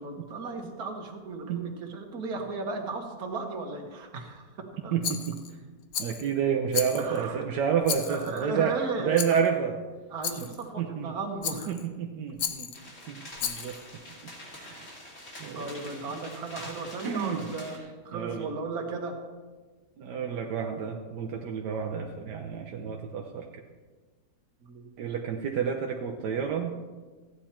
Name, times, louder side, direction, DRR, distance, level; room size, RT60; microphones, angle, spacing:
voice 1, 0.0-4.5 4.8-4.9 7.0-7.4 8.1-9.2 10.1-11.7 15.5-17.8 18.1-19.2 24.6-25.1, right 3 dB, 65° right, 2 dB, 1.9 m, -35 dB
voice 2, 4.9-5.4 6.0-8.8 9.0-9.8 10.8-11.1 11.7-12.7 13.1-13.8 14.2-14.9 15.4-16.0 17.0-17.4 18.1-18.5 20.0-23.6 25.0-26.7, right 7 dB, 85° right, 2 dB, 1.4 m, -30 dB
Rattle, 5.0-5.5 5.9-6.3 6.7-7.2 7.8-8.4 9.2-9.5 10.2-10.6 11.4-11.9 12.4-12.8 13.4-13.8, left 8 dB, 65° left, 1.1 m, -34 dB
sound 1, 12.7-17.8, left 1 dB, 45° left, 2.8 m, -45 dB
14.5 x 9.5 x 4.4 m, 1.4 s
omnidirectional pair, 1.8 m